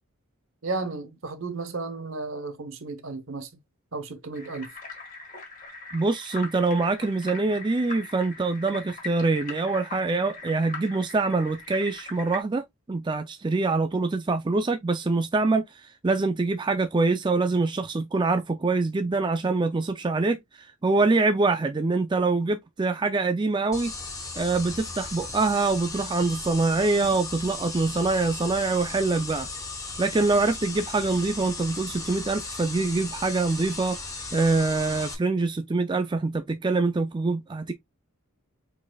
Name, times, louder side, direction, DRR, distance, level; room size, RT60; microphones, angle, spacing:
voice 1, 0.6-3.5 3.9-4.7, right 3 dB, 70° right, 0.9 m, -33 dB
sound 1, 4.3-12.4, left 3 dB, 40° left, 1.8 m, -41 dB
voice 2, 5.9-23.9 24.3-29.5 30.0-34.0 34.3-37.7, right 3 dB, 20° right, 0.4 m, -25 dB
sound 2, 23.7-35.1, left 3 dB, 15° left, 1.0 m, -36 dB
4.9 x 4.1 x 2.3 m
head